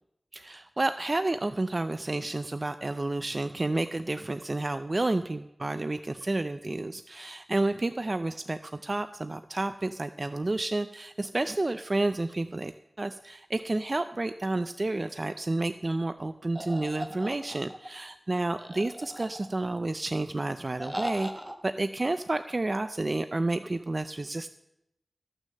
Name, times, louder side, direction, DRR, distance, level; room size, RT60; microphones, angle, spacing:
voice 1, 0.3-12.7 13.0-21.3 21.6-24.5, right 2 dB, 35° right, 11 dB, 0.4 m, -30 dB
sound 1, 16.6-17.9 18.6-19.7 20.8-21.6, right 1 dB, 15° right, 0.9 m, -38 dB
14.0 x 6.3 x 7.6 m, 0.86 s
wide cardioid pair, 85°, 0 cm